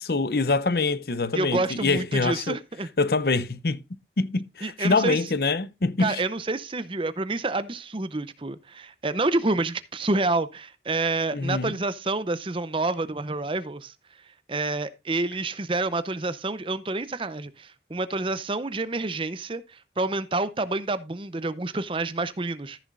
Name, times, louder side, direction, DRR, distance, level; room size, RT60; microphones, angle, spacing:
voice 1, 0.0-2.6 3.0-3.8 4.2-6.2 11.3-11.7, left 3 dB, 60° left, 0.7 m, -25 dB
voice 2, 1.3-2.9 4.6-5.2 6.0-13.9 14.3-22.8, right 2 dB, 30° right, 0.6 m, -28 dB
14.0 x 7.1 x 2.5 m
head